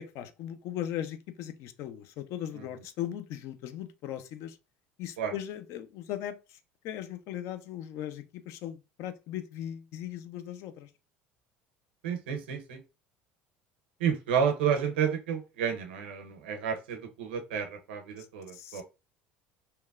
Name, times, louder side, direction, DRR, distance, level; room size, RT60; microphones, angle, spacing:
voice 1, 0.0-4.6 5.0-6.6 6.8-10.9 18.5-18.8, left 11 dB, 60° left, 0.4 m, -38 dB
voice 2, 12.0-12.8 14.0-18.8, right 7 dB, 85° right, 0.6 m, -31 dB
2.9 x 2.2 x 2.3 m
hypercardioid pair, 80°, 5 cm